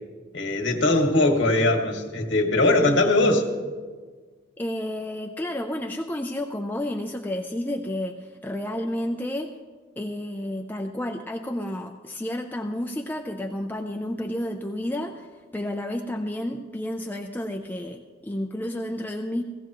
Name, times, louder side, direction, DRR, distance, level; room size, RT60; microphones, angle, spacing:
voice 1, 0.3-3.5, left 2 dB, 85° left, 2 dB, 2.0 m, -21 dB
voice 2, 4.6-9.6 10.0-19.4, left 1 dB, 10° left, 3 dB, 0.5 m, -31 dB
17.0 x 16.0 x 3.0 m, 1.5 s
head